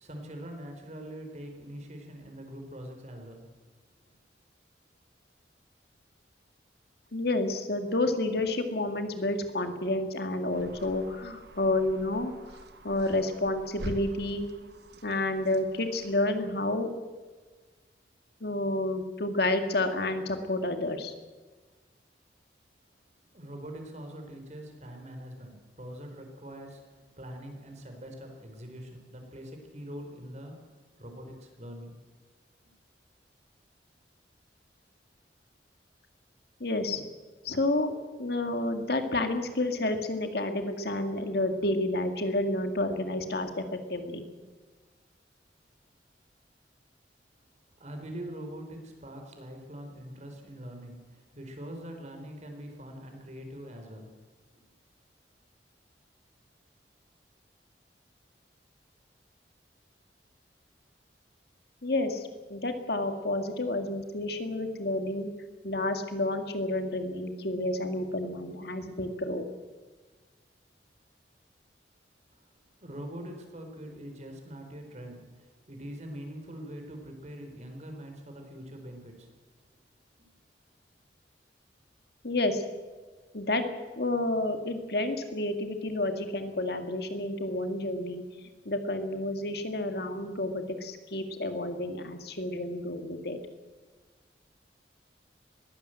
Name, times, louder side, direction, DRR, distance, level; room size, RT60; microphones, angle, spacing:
voice 1, 0.0-3.5 23.3-32.0 32.6-32.7 47.8-54.1 54.6-54.7 72.3-79.3 80.2-80.3, equal, 40° right, 4 dB, 4.2 m, -43 dB
voice 2, 7.1-12.3 12.8-14.5 15.0-16.9 18.4-21.1 36.6-37.0 37.4-37.9 38.2-43.6 43.9-44.3 61.8-65.3 65.6-69.4 82.2-82.6 83.3-83.6 84.0-88.2 88.7-93.4, left 2 dB, 60° left, 7 dB, 2.0 m, -30 dB
sound 1, 10.5-16.2, right 1 dB, 65° right, 1.4 m, -45 dB
21.0 x 16.0 x 7.8 m, 1.3 s
head